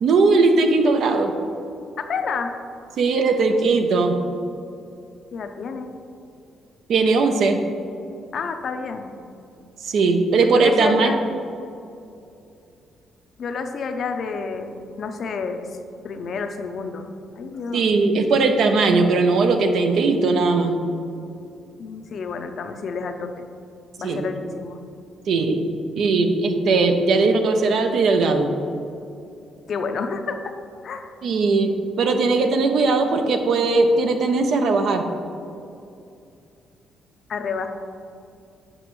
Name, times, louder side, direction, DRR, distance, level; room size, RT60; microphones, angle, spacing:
voice 1, 0.0-1.3 3.0-4.2 6.9-7.6 9.8-11.1 17.7-20.8 24.0-24.2 25.3-25.7 26.0-28.5 31.2-35.1, right 3 dB, 70° right, 6 dB, 0.6 m, -19 dB
voice 2, 2.0-2.5 5.3-5.9 8.3-9.2 10.4-11.3 13.4-15.8 16.0-17.9 21.8-23.5 24.0-24.8 29.7-30.6 30.8-31.1 37.3-37.7, left 5 dB, 60° left, 7 dB, 0.5 m, -30 dB
7.7 x 5.0 x 3.1 m, 2.5 s
cardioid pair, 90°, 0 cm